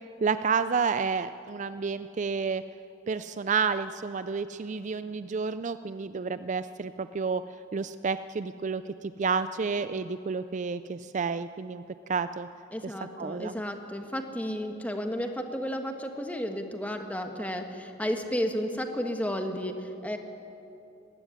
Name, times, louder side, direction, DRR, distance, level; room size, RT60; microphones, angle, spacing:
voice 1, 0.2-2.6 3.1-7.4 7.7-11.8 12.1-12.5 12.8-13.5, right 5 dB, 40° right, 12 dB, 0.4 m, -30 dB
voice 2, 12.7-20.2, equal, 10° left, 5 dB, 1.4 m, -32 dB
19.5 x 16.5 x 9.6 m, 2.7 s
head